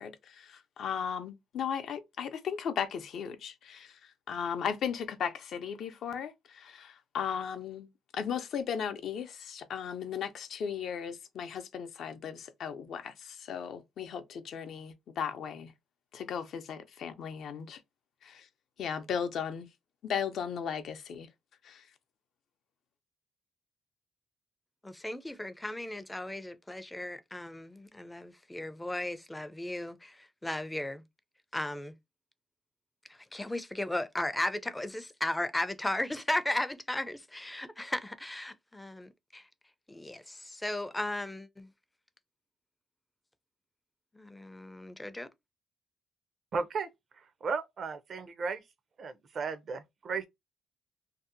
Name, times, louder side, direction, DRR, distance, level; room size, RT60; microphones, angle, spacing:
voice 1, 0.0-4.0 4.3-7.9 8.1-15.7 16.1-17.8 18.2-18.5 18.8-19.7 20.0-21.3 21.6-21.8, left 7 dB, 70° left, 0.5 m, -36 dB
voice 2, 24.8-31.0 31.5-31.9 33.3-39.4 39.9-41.7 44.2-45.3, left 1 dB, 10° left, 0.4 m, -36 dB
voice 3, 46.5-46.9 47.2-48.6 49.0-50.3, right 4 dB, 55° right, 0.4 m, -35 dB
2.6 x 2.0 x 2.5 m
cardioid pair, 90°, 0 cm